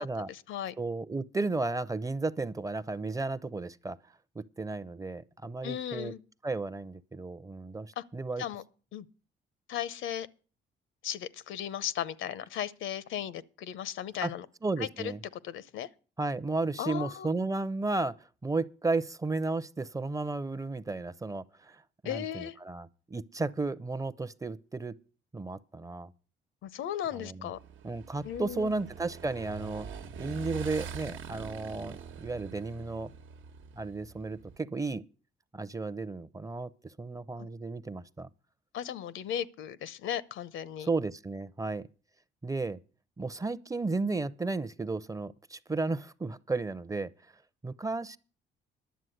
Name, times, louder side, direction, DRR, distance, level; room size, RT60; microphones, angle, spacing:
voice 1, 0.2-0.8 5.6-6.2 8.0-8.1 8.4-8.6 8.9-9.1 9.7-10.3 11.0-14.5 14.8-15.1 15.4-15.9 16.8-17.3 22.0-22.6 26.6-27.6 28.2-28.7 37.4-37.5 38.7-40.9, left 10 dB, 75° left, 0.7 m, -36 dB
voice 2, 0.8-4.0 4.4-6.1 6.4-8.4 14.2-14.3 14.6-15.2 16.2-18.1 18.4-25.0 25.3-26.1 27.1-27.5 27.8-29.9 30.2-33.1 33.8-35.0 35.5-36.7 37.0-38.3 40.9-41.9 42.4-42.8 43.2-47.1 47.6-48.2, right 3 dB, 15° right, 0.6 m, -33 dB
Motorcycle / Engine, 27.5-34.6, right 6 dB, 85° right, 1.2 m, -44 dB
11.5 x 7.4 x 7.9 m
cardioid pair, 90°, 20 cm